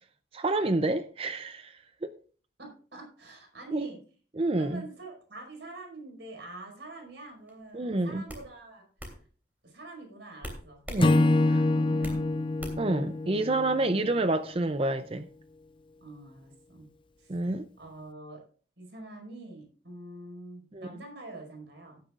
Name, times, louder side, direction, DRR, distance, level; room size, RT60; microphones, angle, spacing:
voice 1, 0.3-2.1 3.7-3.9 4.4-4.8 7.7-8.2 10.9-11.6 12.8-15.3 17.3-17.6 20.7-20.9, right 2 dB, 30° right, 0.5 m, -29 dB
voice 2, 2.6-4.0 4.6-8.9 9.6-10.9 11.5-12.5 16.0-16.9 17.2-17.4 17.8-18.4 18.8-22.0, right 2 dB, 60° right, 4.9 m, -45 dB
sound 1, 7.5-7.7 8.3-8.5 9.0-9.2 10.4-11.1 11.4-12.2 12.6-13.0, equal, 10° right, 3.0 m, -40 dB
Acoustic guitar / Strum, 11.0-14.3, left 2 dB, 25° left, 0.4 m, -26 dB
17.0 x 9.9 x 2.5 m
head